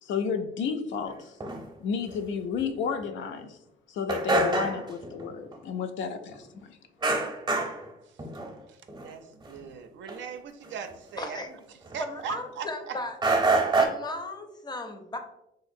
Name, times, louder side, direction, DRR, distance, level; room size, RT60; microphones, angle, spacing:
voice 1, 0.0-1.4 1.8-3.6 3.9-6.5, left 6 dB, 75° left, 7 dB, 0.4 m, -31 dB
sound 1, 1.4-1.6 2.1-2.2 2.6-2.7 3.0-3.1 3.4-3.5 4.1-5.2 5.5-5.6 7.0-7.9 8.2-8.5 8.9-9.1 9.4-9.6 10.1-10.2 10.6-10.7 11.9-12.5 13.2-13.9, right 3 dB, 20° right, 0.6 m, -26 dB
voice 2, 8.7-11.4 11.9-13.0, right 7 dB, 70° right, 7 dB, 0.4 m, -39 dB
voice 3, 11.2-11.5 12.0-13.2 13.7-15.2, left 2 dB, 20° left, 6 dB, 0.5 m, -36 dB
3.7 x 2.5 x 2.6 m, 0.86 s
cardioid pair, 90°, 20 cm